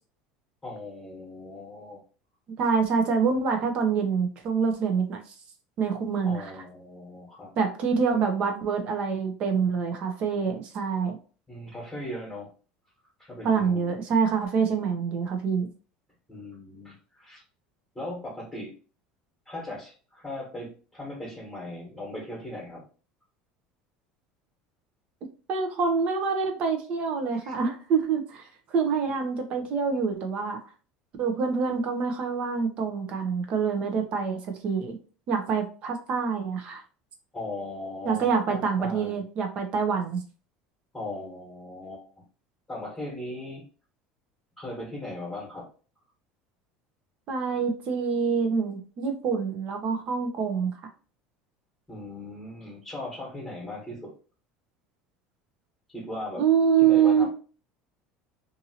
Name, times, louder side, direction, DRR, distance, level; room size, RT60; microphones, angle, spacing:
voice 1, 0.6-2.0 6.2-7.5 11.5-12.5 13.2-14.0 16.3-17.4 17.9-18.7 19.4-22.8 27.3-27.5 37.3-39.2 40.9-42.0 42.7-43.6 44.6-45.6 51.9-54.1 55.9-56.4 56.8-57.3, left 1 dB, 10° left, -4 dB, 1.2 m, -38 dB
voice 2, 2.6-5.2 5.8-6.4 7.6-11.2 13.4-15.7 25.5-30.6 31.2-35.0 35.3-36.8 38.0-40.2 47.3-50.7 56.4-57.3, right 6 dB, 50° right, 4 dB, 0.7 m, -26 dB
2.7 x 2.6 x 2.7 m, 0.38 s
supercardioid pair, 120°, 3 cm